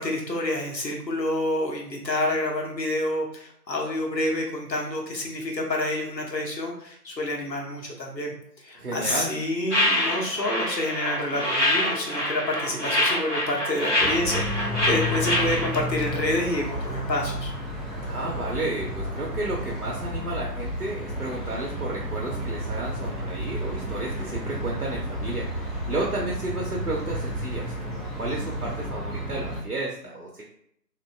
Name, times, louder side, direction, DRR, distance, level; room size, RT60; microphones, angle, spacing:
voice 1, 0.0-17.5, left 1 dB, 90° left, 0 dB, 1.0 m, -28 dB
voice 2, 8.7-9.3 18.1-30.4, right 2 dB, 65° right, -2 dB, 0.7 m, -32 dB
sound 1, 9.7-15.8, left 1 dB, 45° left, 0.6 m, -25 dB
sound 2, 14.0-29.6, equal, ahead, 0.4 m, -32 dB
sound 3, 14.2-28.9, left 1 dB, 60° left, 1.2 m, -42 dB
3.1 x 2.5 x 2.2 m, 0.68 s
figure-of-eight pair, 180°, 50 cm